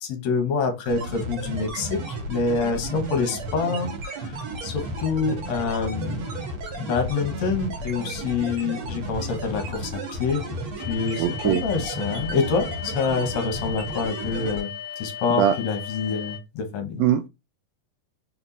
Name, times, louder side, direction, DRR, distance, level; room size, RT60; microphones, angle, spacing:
voice 1, 0.0-3.9 4.2-6.3 6.8-10.4 10.9-17.0, left 5 dB, 65° left, 6 dB, 2.4 m, -26 dB
sound 1, 0.8-14.6, right 1 dB, 55° right, 3.3 m, -33 dB
sound 2, 10.8-16.4, left 10 dB, 35° left, 2.3 m, -36 dB
voice 2, 11.2-11.6 15.4-15.5 17.0-17.3, right 10 dB, 85° right, 9 dB, 1.6 m, -21 dB
5.8 x 4.5 x 4.0 m, 0.23 s
omnidirectional pair, 3.7 m